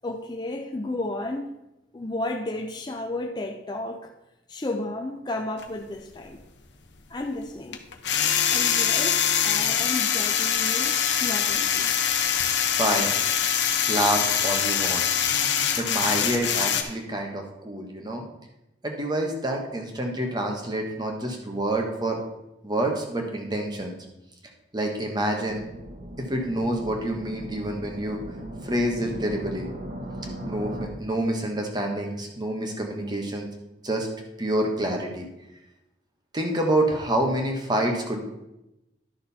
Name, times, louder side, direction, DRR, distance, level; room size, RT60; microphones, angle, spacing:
voice 1, 0.0-1.6 1.9-4.1 4.5-6.4 7.1-7.8 8.5-11.9, left 2 dB, 25° left, 3 dB, 0.5 m, -33 dB
sound 1, 5.6-5.7 7.7-16.8, left 8 dB, 80° left, 0.9 m, -24 dB
voice 2, 12.6-13.2 13.8-15.1 15.3-18.2 18.8-22.2 22.6-23.9 24.7-25.6 26.2-28.2 28.6-29.7 30.4-33.5 33.8-34.1 34.4-35.3 36.3-38.2, right 1 dB, 25° right, 2 dB, 1.4 m, -27 dB
sound 2, 25.5-30.9, equal, 45° right, 1.3 m, -38 dB
11.5 x 6.4 x 4.2 m, 0.93 s
head